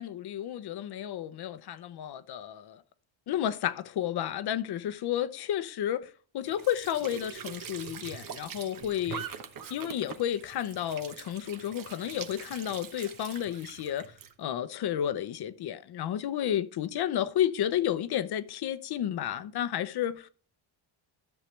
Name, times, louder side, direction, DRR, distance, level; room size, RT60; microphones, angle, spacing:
voice 1, 0.0-2.8 3.3-9.2 9.7-20.3, left 10 dB, 55° left, 0.8 m, -32 dB
Squeak / Sink (filling or washing) / Trickle dribble, 6.4-14.3, right 8 dB, 45° right, 1.0 m, -43 dB
13.0 x 7.4 x 3.3 m
cardioid pair, 135°, 47 cm